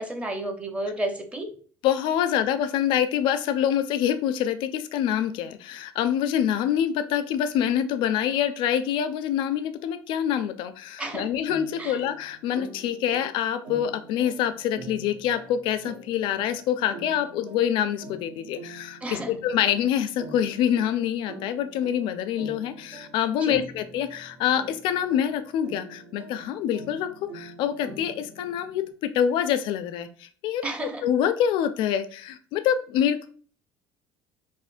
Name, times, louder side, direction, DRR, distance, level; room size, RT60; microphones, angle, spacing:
voice 1, 0.0-1.5 11.0-11.3 11.8-12.0 19.0-19.4 23.4-23.7 30.6-31.1, right 1 dB, 15° right, 5 dB, 0.6 m, -32 dB
voice 2, 1.8-33.3, left 9 dB, 65° left, 10 dB, 0.4 m, -26 dB
sound 1, 11.5-28.9, right 2 dB, 85° right, 1.2 m, -45 dB
4.9 x 2.1 x 2.5 m, 0.44 s
cardioid pair, 125°, 9 cm